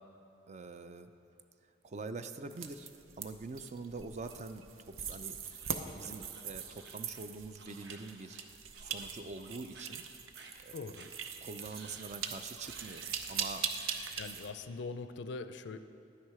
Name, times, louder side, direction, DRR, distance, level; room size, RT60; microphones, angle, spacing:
voice 1, 0.5-1.1 1.8-2.9 3.2-5.6 5.9-8.4 8.8-10.0 10.6-11.1 11.4-13.7, right 3 dB, 35° right, 9 dB, 0.4 m, -45 dB
sound 1, 2.5-14.5, right 7 dB, 85° right, 0.7 m, -42 dB
sound 2, 5.4-8.5 8.7-9.1 9.3-9.9 10.3-10.5 10.9-11.1 11.6-12.2 12.6-13.2 13.7-14.3, right 4 dB, 55° right, 1.0 m, -54 dB
voice 2, 10.7-11.1 14.2-15.8, left 4 dB, 60° left, 10 dB, 0.4 m, -42 dB
11.0 x 9.3 x 4.8 m, 2.6 s
head